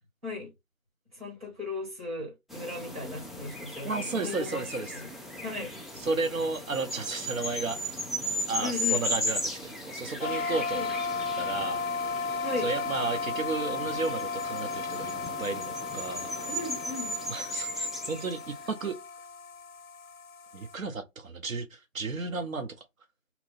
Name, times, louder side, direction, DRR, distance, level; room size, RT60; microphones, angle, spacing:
voice 1, 1.1-4.7 4.9-5.1 5.4-5.7 8.6-9.0 10.7-10.9 12.4-12.7 16.5-17.1, left 3 dB, 25° right, 1.8 m, -36 dB
sound 1, 2.5-18.7, left 1 dB, ahead, 0.3 m, -36 dB
voice 2, 3.8-4.9 6.0-8.0 8.5-10.9 11.4-11.8 12.6-15.1 15.4-16.3 17.3-19.0 20.5-22.8, right 3 dB, 80° right, 0.7 m, -33 dB
sound 2, 10.2-20.8, left 4 dB, 90° left, 0.6 m, -35 dB
2.8 x 2.0 x 4.0 m
figure-of-eight pair, 175°, 40 cm